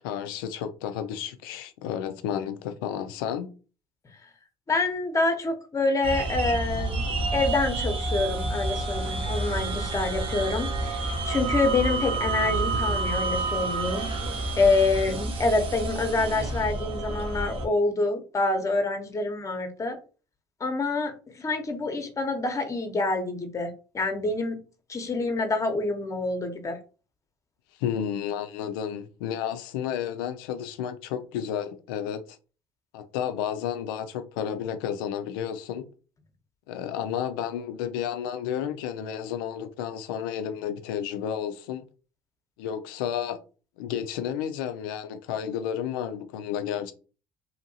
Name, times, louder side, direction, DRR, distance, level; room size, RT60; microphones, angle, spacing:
voice 1, 0.0-3.5 27.8-32.2 32.9-35.9 36.7-41.9 42.6-43.4 43.8-46.9, left 9 dB, 85° left, 0.4 m, -31 dB
voice 2, 4.7-14.3 14.6-20.0 20.6-24.6 24.9-26.8, left 3 dB, 30° left, 0.8 m, -27 dB
sound 1, 6.0-17.7, right 2 dB, 55° right, 0.7 m, -29 dB
2.8 x 2.6 x 2.7 m
hypercardioid pair, 70°, 11 cm